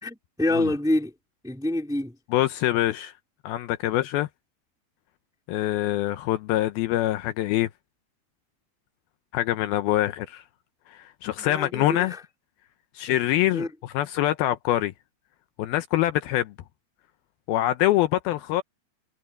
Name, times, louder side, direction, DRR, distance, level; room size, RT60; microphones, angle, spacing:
voice 1, 0.0-1.1 1.4-2.1 11.4-12.2 13.5-13.7, left 1 dB, ahead, 1.5 m, -27 dB
voice 2, 2.3-3.1 3.4-4.3 5.5-7.7 9.3-10.4 10.9-12.2 13.0-14.9 15.6-16.5 17.5-18.6, left 14 dB, 80° left, 2.4 m, -25 dB
omnidirectional pair, 4.8 m